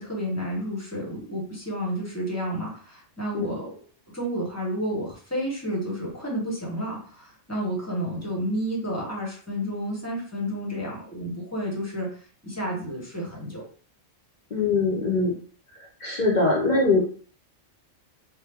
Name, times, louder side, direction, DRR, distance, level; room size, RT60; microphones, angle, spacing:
voice 1, 0.0-3.7 4.1-12.2 12.4-13.7, equal, 15° left, -3 dB, 0.8 m, -31 dB
voice 2, 14.5-15.3 16.0-17.0, left 3 dB, 50° left, -3 dB, 0.6 m, -22 dB
3.1 x 2.0 x 3.4 m, 0.43 s
omnidirectional pair, 1.3 m